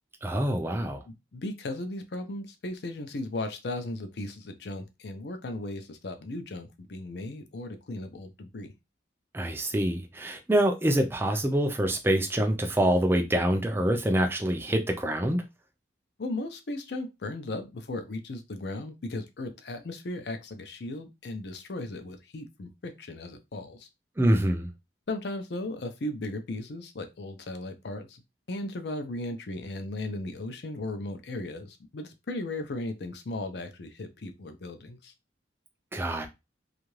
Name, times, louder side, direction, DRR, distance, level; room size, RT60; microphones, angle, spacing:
voice 1, 0.2-1.0 9.3-15.4 24.2-24.7 35.9-36.3, right 1 dB, 10° right, 0.4 m, -25 dB
voice 2, 1.1-8.7 16.2-23.9 25.1-28.2 28.5-35.1, left 2 dB, 60° left, 0.5 m, -36 dB
2.7 x 2.4 x 3.1 m
head